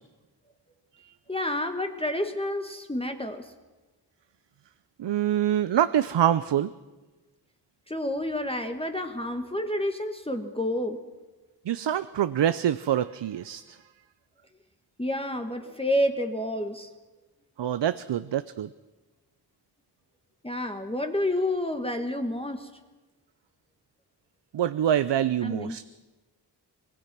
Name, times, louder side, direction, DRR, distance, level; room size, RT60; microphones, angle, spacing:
voice 1, 1.3-3.5 7.9-11.0 15.0-16.9 20.4-22.7 25.4-25.8, left 1 dB, 15° left, 5 dB, 1.3 m, -29 dB
voice 2, 5.0-6.7 11.7-13.8 17.6-18.7 24.5-25.8, right 10 dB, 80° right, 14 dB, 0.6 m, -25 dB
25.0 x 19.0 x 6.0 m, 1.2 s
wide cardioid pair, 60°, 42 cm